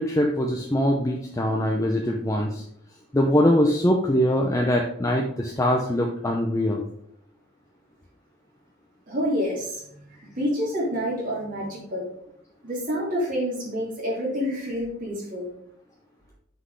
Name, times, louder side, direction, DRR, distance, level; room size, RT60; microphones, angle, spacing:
voice 1, 0.0-2.6 3.1-6.8, equal, 15° left, 0 dB, 0.7 m, -22 dB
voice 2, 9.1-10.0 10.4-12.1 12.6-15.5, equal, 45° right, -7 dB, 2.7 m, -28 dB
6.1 x 5.7 x 4.8 m, 0.70 s
head